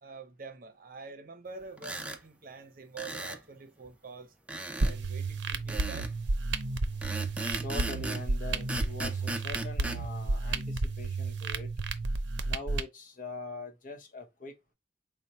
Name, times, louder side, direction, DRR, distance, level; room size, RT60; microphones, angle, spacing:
voice 1, 0.0-4.3 4.8-6.1, right 4 dB, 50° right, 0.7 m, -46 dB
sound 1, 1.8-2.2 3.0-3.4 4.5-5.0 5.7-6.1 7.0-8.3 8.7-10.0, right 1 dB, 5° right, 0.4 m, -37 dB
sound 2, 4.8-12.8, right 3 dB, 90° right, 0.6 m, -32 dB
voice 2, 7.6-11.7 12.4-14.6, left 2 dB, 50° left, 0.9 m, -42 dB
4.1 x 2.1 x 4.1 m
head